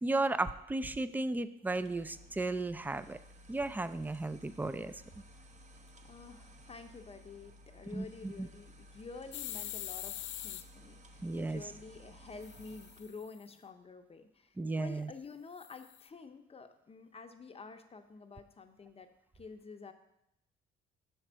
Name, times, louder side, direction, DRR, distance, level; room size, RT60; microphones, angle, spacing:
voice 1, 0.0-3.2 3.5-4.9 7.9-8.5 11.2-11.6 14.6-15.1, right 2 dB, 10° right, 13 dB, 0.3 m, -34 dB
sound 1, 1.7-13.2, equal, 35° right, 0.9 m, -57 dB
voice 2, 6.0-19.9, left 4 dB, 30° left, 7 dB, 0.7 m, -50 dB
sound 2, 9.3-10.6 12.4-13.4 15.6-16.1, left 12 dB, 75° left, 0.5 m, -43 dB
6.5 x 4.4 x 6.1 m, 0.83 s
cardioid pair, 90°, 20 cm